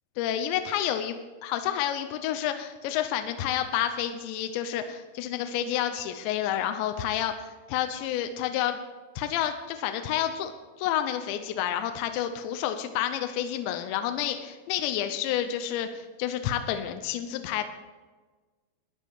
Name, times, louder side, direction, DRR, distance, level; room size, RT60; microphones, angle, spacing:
voice 1, 0.2-8.8 9.2-10.5 10.8-17.6, left 10 dB, 80° left, 7 dB, 2.7 m, -29 dB
13.5 x 9.7 x 4.7 m, 1.3 s
omnidirectional pair, 5.7 m